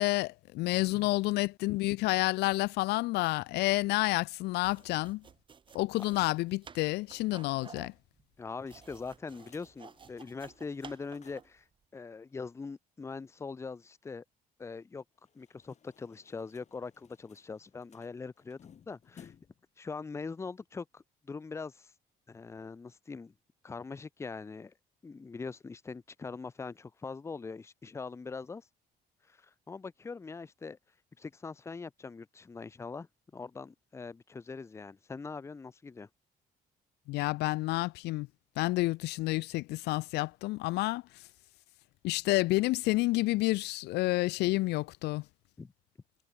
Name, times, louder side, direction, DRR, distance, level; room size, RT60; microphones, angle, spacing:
voice 1, 0.0-5.2 5.7-7.9 37.1-38.3 38.6-41.2 42.0-45.2, left 20 dB, 85° left, 0.4 m, -29 dB
sound 1, 4.5-11.6, right 6 dB, 30° right, 0.9 m, -53 dB
sound 2, 8.4-11.6 11.9-12.0 12.3-12.4 15.1-19.7, left 8 dB, 45° left, 2.9 m, -61 dB
voice 2, 8.4-11.7 11.9-14.2 14.6-15.0 15.3-18.6 18.9-19.3 19.8-21.9 22.3-23.3 23.6-24.7 25.0-28.7 29.2-30.8 31.2-33.1 33.3-36.1 45.6-45.7, left 4 dB, 15° left, 0.5 m, -42 dB
cardioid pair, 115°, 17 cm